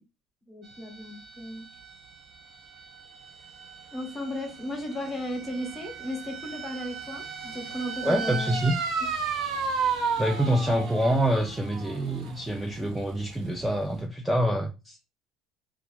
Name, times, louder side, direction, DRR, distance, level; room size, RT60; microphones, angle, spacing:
voice 1, 0.5-1.6 3.9-8.6, left 1 dB, 20° left, 0.9 m, -35 dB
sound 1, 0.7-14.0, right 5 dB, 50° right, 0.6 m, -35 dB
voice 2, 8.0-8.8 10.2-15.0, right 1 dB, 5° right, 0.3 m, -26 dB
2.3 x 2.3 x 3.2 m
cardioid pair, 145°, 0 cm